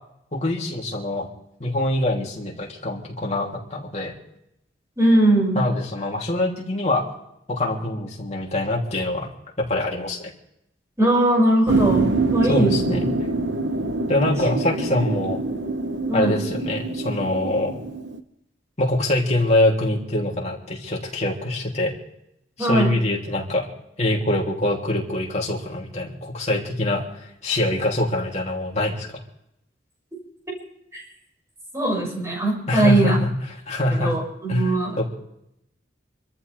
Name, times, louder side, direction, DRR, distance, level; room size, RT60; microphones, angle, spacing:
voice 1, 0.3-1.3 1.6-4.1 5.5-7.1 7.5-9.3 9.6-10.3 12.4-13.0 14.1-15.4 16.1-17.8 18.8-21.9 22.6-23.7 24.0-29.2 32.7-34.1 34.5-35.1, left 1 dB, 40° left, -2 dB, 3.2 m, -24 dB
voice 2, 5.0-5.6 11.0-13.0 16.1-16.3 22.6-22.9 30.9-31.0 31.7-33.2 34.0-34.9, right 1 dB, 15° right, -2 dB, 6.7 m, -20 dB
sound 1, 11.7-18.2, right 3 dB, 70° right, 1.0 m, -25 dB
27.0 x 14.0 x 3.5 m, 0.80 s
head